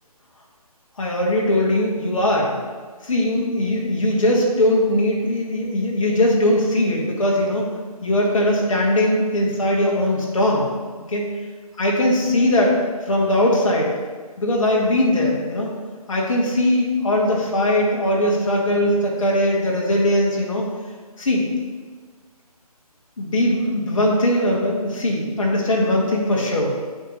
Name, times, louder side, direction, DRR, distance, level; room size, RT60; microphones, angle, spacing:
voice 1, 1.0-2.6 3.0-7.7 8.0-10.7 11.1-11.2 11.8-12.8 13.1-13.9 14.4-15.7 16.1-20.7 21.2-21.4 23.2-26.8, left 1 dB, 55° left, -2 dB, 1.8 m, -20 dB
8.9 x 3.2 x 5.4 m, 1.5 s
figure-of-eight pair, 155°, 20 cm